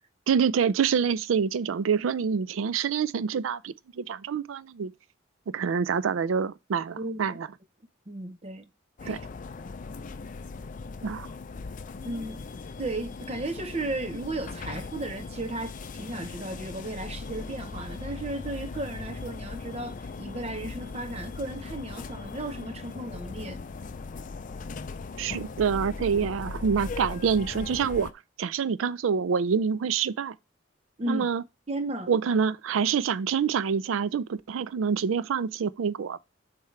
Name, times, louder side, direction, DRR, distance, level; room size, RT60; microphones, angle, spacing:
voice 1, 0.3-4.9 5.5-7.5 9.1-9.2 11.0-11.3 25.2-28.1 28.4-30.4 31.1-31.4 32.1-36.2, right 6 dB, 85° right, 0.4 m, -26 dB
voice 2, 7.0-7.4 8.1-8.7 9.0-9.2 12.0-12.4 12.8-23.6 31.0-31.3 31.7-32.1, right 2 dB, 30° right, 0.7 m, -35 dB
sound 1, 9.0-28.1, left 4 dB, 40° left, 0.4 m, -39 dB
7.3 x 4.5 x 3.2 m
head